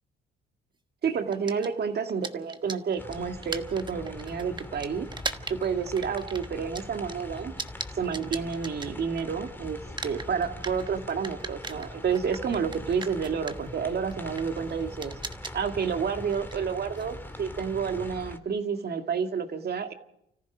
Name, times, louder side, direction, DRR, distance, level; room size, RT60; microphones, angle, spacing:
voice 1, 1.0-5.1 5.5-7.6 7.9-15.1 15.5-19.9, right 6 dB, 55° right, 6 dB, 2.0 m, -30 dB
sound 1, 1.3-9.5 9.8-18.0, right 3 dB, 20° right, 1.3 m, -40 dB
sound 2, 3.0-18.4, left 1 dB, 10° left, 2.0 m, -42 dB
30.0 x 14.5 x 6.2 m, 0.80 s
cardioid pair, 90°, 20 cm